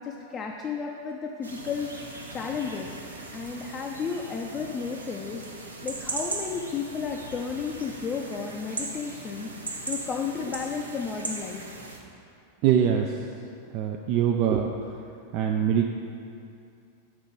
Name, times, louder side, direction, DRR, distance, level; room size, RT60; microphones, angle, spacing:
voice 1, 0.0-2.9 3.3-5.4 5.8-9.5 9.9-11.6, left 5 dB, 25° left, 0 dB, 0.5 m, -33 dB
sound 1, 1.4-12.0, right 2 dB, 75° right, 0.7 m, -38 dB
voice 2, 12.6-13.1 13.7-14.7 15.3-15.9, right 9 dB, 40° right, 3 dB, 0.3 m, -23 dB
6.0 x 4.3 x 5.4 m, 2.5 s
figure-of-eight pair, 90°, 0 cm